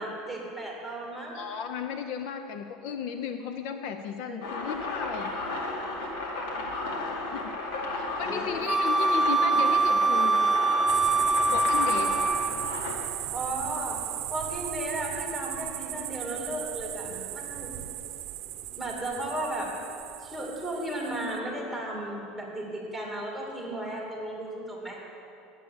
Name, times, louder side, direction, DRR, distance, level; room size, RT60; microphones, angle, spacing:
voice 1, 0.0-1.4 4.3-4.4 8.2-8.4 13.3-14.0 14.3-17.7 18.5-19.7 20.2-25.0, right 1 dB, 5° left, -3 dB, 2.6 m, -35 dB
voice 2, 1.3-5.3 7.2-7.5 7.9-10.5 11.5-12.1, left 7 dB, 60° left, 7 dB, 0.6 m, -35 dB
sound 1, 4.4-13.0, left 2 dB, 85° left, 2.2 m, -33 dB
Wind instrument woodwind instrument, 8.7-12.7, right 3 dB, 20° right, 0.3 m, -24 dB
sound 2, 10.9-21.4, right 14 dB, 55° right, 0.7 m, -37 dB
9.7 x 8.4 x 8.7 m, 2.8 s
cardioid pair, 155°, 0 cm